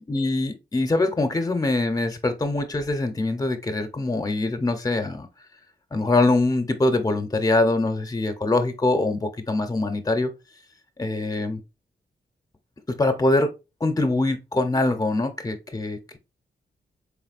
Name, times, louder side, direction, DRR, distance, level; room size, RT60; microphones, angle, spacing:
voice 1, 0.1-5.3 5.9-10.3 11.0-11.6 12.9-13.5 13.8-16.2, left 2 dB, 20° left, 7 dB, 0.6 m, -23 dB
3.9 x 3.5 x 2.4 m, 0.27 s
cardioid pair, 80°, 18 cm